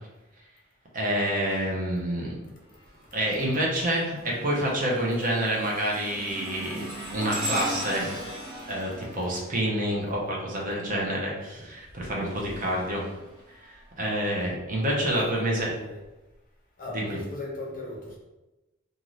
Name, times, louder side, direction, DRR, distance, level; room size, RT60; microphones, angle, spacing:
voice 1, 0.9-2.4 3.1-6.9 7.1-8.1 8.7-13.0 13.6-15.7 16.9-17.2, right 1 dB, 40° right, -3 dB, 0.7 m, -28 dB
sound 1, 2.7-3.1 3.6-10.4 11.7-13.9 14.5-14.7 15.6-15.7, equal, 20° right, 1.2 m, -38 dB
voice 2, 14.9-16.0 16.8-18.2, left 2 dB, 45° left, -2 dB, 0.7 m, -38 dB
2.6 x 2.5 x 3.1 m, 1.0 s
head